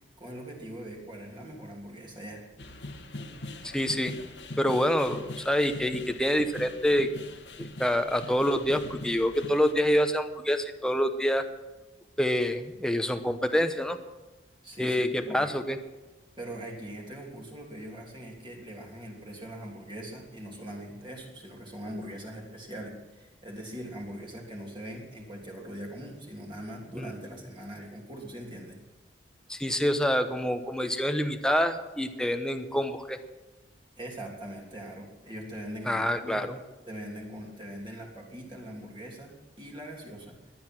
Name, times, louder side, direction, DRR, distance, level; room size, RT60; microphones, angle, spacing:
voice 1, 0.2-2.4 14.6-15.5 16.4-28.8 34.0-36.5 36.9-40.5, right 1 dB, 30° right, -1 dB, 3.1 m, -41 dB
sound 1, 2.6-9.7, left 2 dB, 85° left, 1.7 m, -42 dB
voice 2, 3.6-4.1 4.6-7.1 7.6-11.5 12.2-14.0 14.8-15.8 27.0-27.1 29.5-33.2 35.9-36.6, equal, 5° left, 6 dB, 0.9 m, -27 dB
19.0 x 11.0 x 6.1 m, 1.1 s
head